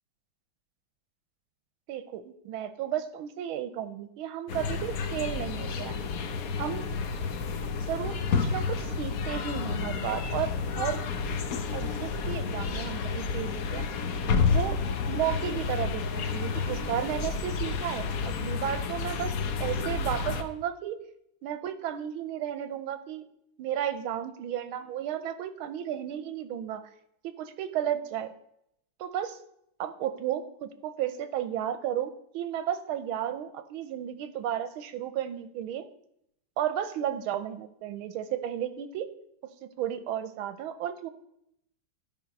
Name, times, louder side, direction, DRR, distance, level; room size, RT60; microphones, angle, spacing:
voice 1, 1.9-6.0 6.6-6.8 7.9-10.5 10.8-11.0 11.7-13.9 14.5-14.8 15.1-21.0 21.4-23.2 23.6-26.9 27.2-28.3 29.0-29.4 29.8-35.8 36.6-39.1 39.6-41.1, right 10 dB, 85° right, 12 dB, 1.5 m, -33 dB
sound 1, 4.5-20.4, left 5 dB, 60° left, 0.9 m, -30 dB
12.5 x 5.3 x 5.2 m, 0.74 s
omnidirectional pair, 2.3 m